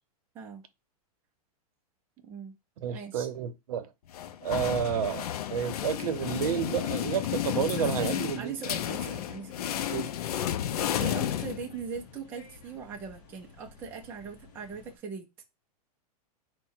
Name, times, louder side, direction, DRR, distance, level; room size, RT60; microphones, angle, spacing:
voice 1, 2.2-2.5 2.9-3.3 7.8-9.7 11.0-15.3, right 6 dB, 10° right, 0.4 m, -40 dB
voice 2, 2.8-3.9 4.4-5.3 5.5-8.6 9.9-10.1, right 9 dB, 70° right, 0.7 m, -30 dB
sound 1, 4.1-12.1, left 11 dB, 80° left, 0.4 m, -32 dB
sound 2, 9.4-15.0, left 3 dB, 40° left, 0.9 m, -54 dB
4.6 x 2.1 x 4.3 m
supercardioid pair, 175°, 20 cm